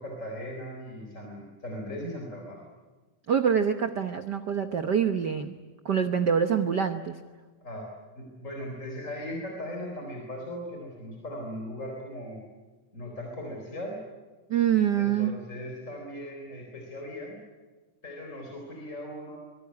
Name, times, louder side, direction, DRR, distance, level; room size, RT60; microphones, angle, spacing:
voice 1, 0.0-2.6 7.6-7.9 8.2-12.4 12.9-14.0 14.9-17.4 18.0-19.4, equal, 25° left, 1 dB, 4.3 m, -38 dB
voice 2, 3.3-5.5 5.8-7.2 14.5-15.3, right 8 dB, 80° right, 8 dB, 0.9 m, -25 dB
25.0 x 23.5 x 9.7 m, 1.3 s
omnidirectional pair, 3.5 m